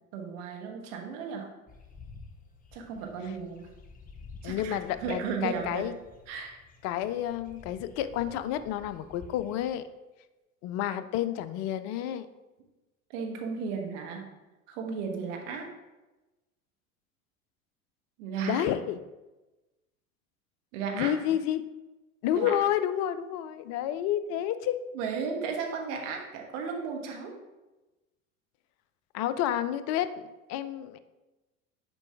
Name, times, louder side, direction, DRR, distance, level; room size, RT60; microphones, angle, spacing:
voice 1, 0.1-1.5 2.7-3.7 4.4-5.8 6.3-6.6 13.1-14.3 14.7-15.7 18.2-18.6 20.7-21.1 22.3-22.5 24.9-27.4, right 6 dB, 60° right, 2 dB, 1.3 m, -35 dB
sound 1, 1.7-9.7, left 4 dB, 20° left, 0.8 m, -51 dB
voice 2, 4.4-5.9 6.8-9.9 10.6-12.3 18.5-19.0 20.9-21.6 22.2-24.8 29.1-31.0, left 11 dB, 40° left, 12 dB, 0.4 m, -30 dB
6.7 x 4.6 x 3.5 m, 1.1 s
hypercardioid pair, 80°, 42 cm